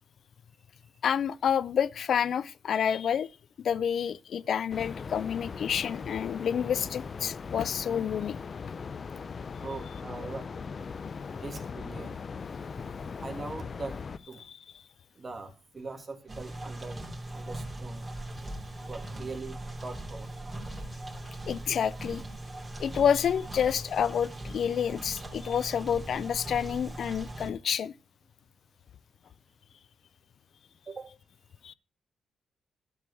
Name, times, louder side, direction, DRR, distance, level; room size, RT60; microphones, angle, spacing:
voice 1, 1.0-3.3 3.6-8.4 21.5-22.2 22.8-27.9 31.6-31.7, left 8 dB, 70° left, 0.5 m, -28 dB
sound 1, 4.7-14.2, left 5 dB, 50° left, 0.8 m, -39 dB
voice 2, 9.6-10.5 11.2-12.2 13.2-14.0 14.3-14.4 15.2-18.1 18.9-20.3 30.9-31.1, right 3 dB, 40° right, 2.4 m, -41 dB
sound 2, 16.3-27.5, right 1 dB, 20° right, 3.2 m, -40 dB
12.0 x 4.6 x 8.4 m
supercardioid pair, 65°, 0 cm